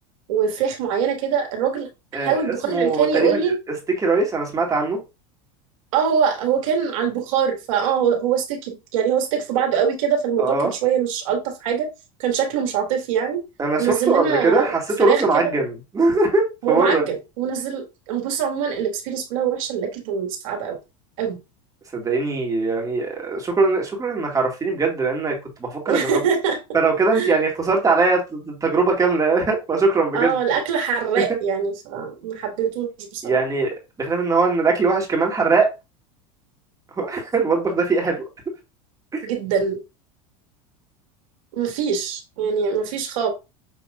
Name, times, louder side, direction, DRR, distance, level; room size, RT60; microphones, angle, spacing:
voice 1, 0.3-1.9 2.2-3.5 5.9-10.5 10.8-11.9 12.2-13.4 13.8-14.7 15.0-15.5 16.6-17.0 17.4-20.8 21.2-21.4 25.9-26.6 27.1-27.4 30.1-33.4 39.2-39.8 41.5-43.3, right 7 dB, 75° right, 3 dB, 1.7 m, -23 dB
voice 2, 2.1-3.4 4.0-5.0 10.4-10.7 13.6-17.1 21.9-26.2 26.7-30.3 31.2-31.3 33.2-33.7 34.0-35.7 37.0-38.2, right 3 dB, 20° right, 1 dB, 1.9 m, -21 dB
6.5 x 3.0 x 2.4 m, 0.26 s
supercardioid pair, 110°, 17 cm